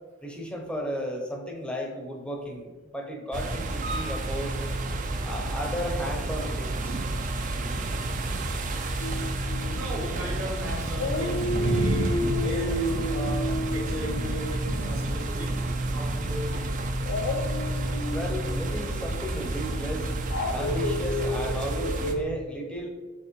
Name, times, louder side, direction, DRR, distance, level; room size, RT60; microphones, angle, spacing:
voice 1, 0.2-4.7 5.2-7.0 18.0-20.1 20.5-22.9, equal, 5° left, 1 dB, 0.6 m, -34 dB
sound 1, 3.3-22.1, right 2 dB, 40° right, 0.4 m, -30 dB
Dog, 9.0-10.5 10.9-16.0 17.0-22.2, left 1 dB, 65° left, 0.4 m, -33 dB
voice 2, 9.7-15.6 15.9-16.7, equal, 90° right, -4 dB, 1.2 m, -36 dB
5.6 x 3.1 x 3.0 m, 1.3 s
head